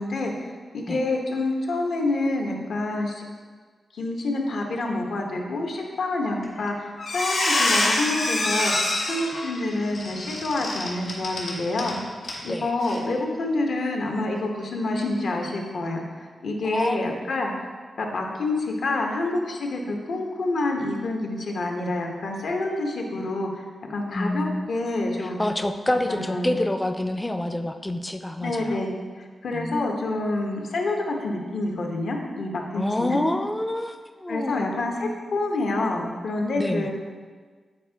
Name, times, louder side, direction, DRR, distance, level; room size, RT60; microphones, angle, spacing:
voice 1, 0.0-3.2 3.9-12.0 12.4-17.5 18.0-23.6 23.9-25.4 26.1-26.5 28.4-28.9 29.2-33.2 34.3-36.9, left 2 dB, 75° left, 1 dB, 0.9 m, -27 dB
Squeak, 6.4-6.7 7.0-11.9 12.2-12.4 12.8-13.0, left 2 dB, 90° left, 1.6 m, -25 dB
voice 2, 16.6-17.1 24.1-24.7 25.2-28.8 29.5-29.8 32.7-34.7 36.6-36.9, left 1 dB, 10° left, 7 dB, 0.4 m, -27 dB
8.4 x 4.4 x 3.4 m, 1.5 s
wide cardioid pair, 130°, 0 cm